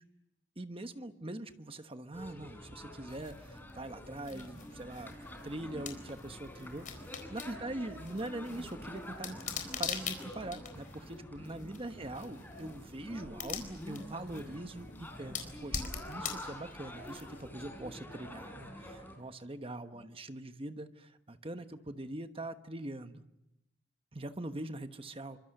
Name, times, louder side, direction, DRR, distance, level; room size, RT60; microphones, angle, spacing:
voice 1, 0.6-9.4 9.8-23.2 24.1-25.4, right 1 dB, 30° right, 9 dB, 1.2 m, -43 dB
sound 1, 2.1-19.2, equal, 10° left, 4.0 m, -47 dB
sound 2, 3.1-17.6, left 7 dB, 45° left, 4.0 m, -44 dB
28.0 x 25.0 x 6.7 m, 0.89 s
head